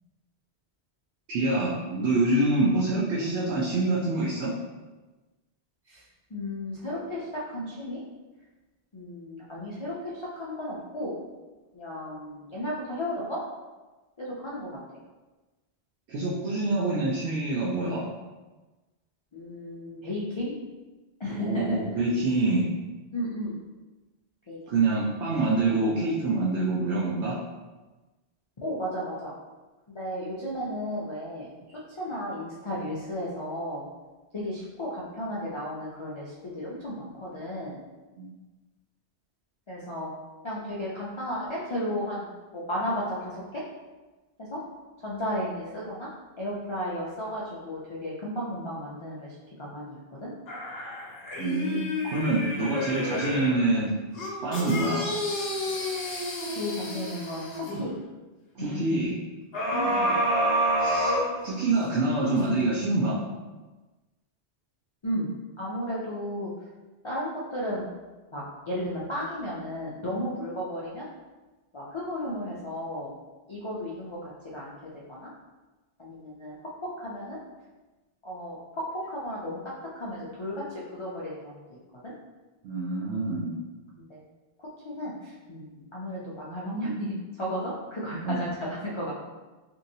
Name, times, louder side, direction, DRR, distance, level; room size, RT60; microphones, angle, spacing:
voice 1, 1.3-4.5 16.1-18.1 21.4-22.7 24.7-27.4 38.2-38.3 51.4-51.9 52.1-53.9 54.4-55.0 58.5-59.2 60.8-61.2 61.4-63.2 82.6-83.6 88.2-88.4, right 2 dB, 90° right, -6 dB, 0.9 m, -26 dB
voice 2, 6.3-8.0 8.9-11.2 11.7-13.4 14.2-14.8 19.3-20.5 21.2-21.8 23.1-23.6 24.5-24.8 28.6-29.3 29.9-31.5 32.0-33.8 34.3-37.8 39.7-40.1 40.4-43.6 44.4-44.6 45.0-46.1 46.4-50.3 56.5-57.9 58.6-59.0 59.7-60.3 65.0-65.3 65.6-66.5 67.0-67.8 68.3-71.1 71.7-73.1 73.5-75.3 76.0-76.6 76.8-77.4 78.2-81.6 82.0-82.1 84.0-84.1 84.8-89.1, equal, 50° left, -7 dB, 0.3 m, -34 dB
sound 1, 50.5-53.6 54.1-57.8 59.5-61.9 62.4-62.5, equal, 70° left, 0.9 m, -29 dB
3.0 x 2.7 x 2.6 m, 1.2 s
omnidirectional pair, 1.1 m